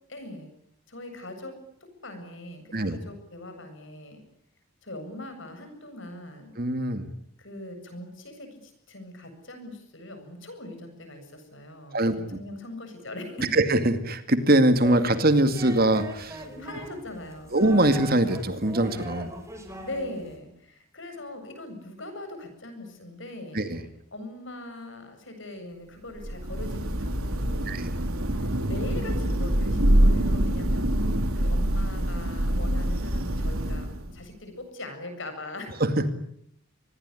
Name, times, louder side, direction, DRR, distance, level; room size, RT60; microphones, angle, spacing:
voice 1, 0.1-0.5 0.9-1.6 2.0-4.2 4.8-6.5 7.4-12.0 12.3-13.6 16.6-17.7 19.8-23.7 24.1-27.7 28.3-30.9 31.3-35.8, left 1 dB, 60° left, 7 dB, 7.9 m, -41 dB
voice 2, 6.6-7.1 11.9-12.1 13.4-16.4 17.5-19.3 23.5-23.8 27.7-28.0 31.0-31.3 35.8-36.1, right 1 dB, 45° right, 9 dB, 2.3 m, -23 dB
sound 1, 14.7-20.4, equal, 15° right, 5.2 m, -40 dB
Thunder / Rain, 26.2-34.2, right 1 dB, 85° right, 3.5 m, -25 dB
25.5 x 20.5 x 9.8 m, 0.71 s
head